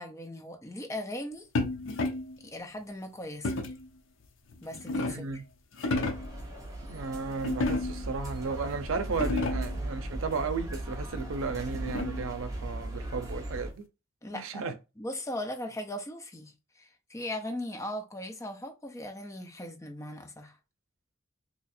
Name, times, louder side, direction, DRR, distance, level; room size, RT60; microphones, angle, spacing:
voice 1, 0.0-1.5 2.4-3.5 4.6-5.3 14.2-20.5, left 1 dB, 15° left, 0.5 m, -39 dB
sound 1, 1.6-2.4 3.4-3.9 4.5-5.4 5.7-6.4 7.4-8.1 8.7-8.8 9.1-9.8 11.2-12.3, left 2 dB, 70° left, 0.6 m, -32 dB
voice 2, 5.1-5.4 6.9-13.9 14.3-14.7, right 4 dB, 80° right, 0.5 m, -34 dB
sound 2, 5.9-13.7, right 1 dB, 15° right, 0.8 m, -37 dB
2.8 x 2.4 x 4.2 m
head